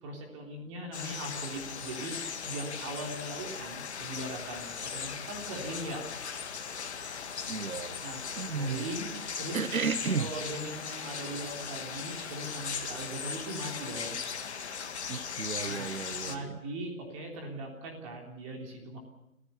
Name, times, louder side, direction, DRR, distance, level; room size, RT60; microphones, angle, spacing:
voice 1, 0.0-2.2 2.4-6.0 8.0-8.2 8.5-9.6 10.2-14.2 15.6-15.9 16.2-19.0, right 1 dB, 25° right, 3.4 m, -40 dB
sound 1, 0.9-16.4, left 6 dB, 50° left, 2.0 m, -38 dB
sound 2, 3.8-10.4, left 7 dB, 20° left, 3.0 m, -53 dB
voice 2, 7.5-8.0 8.4-8.9 9.5-10.3 15.1-16.5, right 5 dB, 80° right, 1.1 m, -33 dB
28.5 x 15.5 x 6.9 m
figure-of-eight pair, 150°, 42 cm